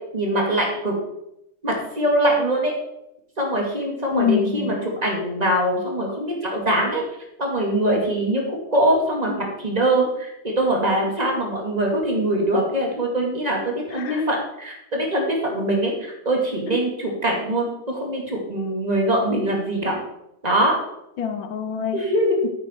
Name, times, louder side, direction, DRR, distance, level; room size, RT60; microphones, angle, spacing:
voice 1, 0.1-0.9 1.6-2.7 3.4-7.0 7.4-20.0 20.4-20.7 21.9-22.4, right 1 dB, 20° right, 0 dB, 2.3 m, -23 dB
voice 2, 4.1-4.8 14.0-14.3 16.7-16.8 21.2-22.0, left 7 dB, 80° left, 8 dB, 1.8 m, -25 dB
9.6 x 9.2 x 4.5 m, 0.84 s
omnidirectional pair, 2.1 m